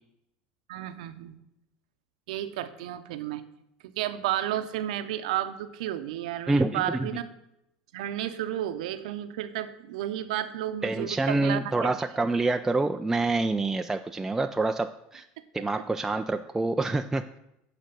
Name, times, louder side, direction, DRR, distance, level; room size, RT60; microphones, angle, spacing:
voice 1, 0.7-1.4 2.3-3.4 3.8-7.3 7.9-11.9, right 12 dB, 80° right, 11 dB, 0.7 m, -32 dB
voice 2, 6.5-6.8 10.8-15.2 15.5-17.4, right 2 dB, 10° right, 6 dB, 0.4 m, -27 dB
8.9 x 5.1 x 6.9 m, 0.84 s
supercardioid pair, 105°, 4 cm